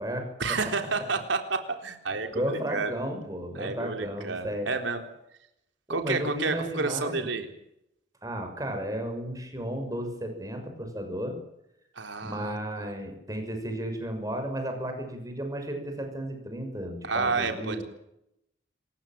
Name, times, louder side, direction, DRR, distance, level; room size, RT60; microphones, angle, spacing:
voice 1, 0.4-2.4 2.7-2.9 3.6-5.0 5.9-7.5 12.0-12.9 17.0-17.8, right 4 dB, 90° right, 6 dB, 4.0 m, -30 dB
voice 2, 2.1-4.7 5.9-7.3 8.2-11.4 12.2-17.8, right 1 dB, 20° right, 5 dB, 6.2 m, -33 dB
27.5 x 15.5 x 9.0 m, 0.79 s
head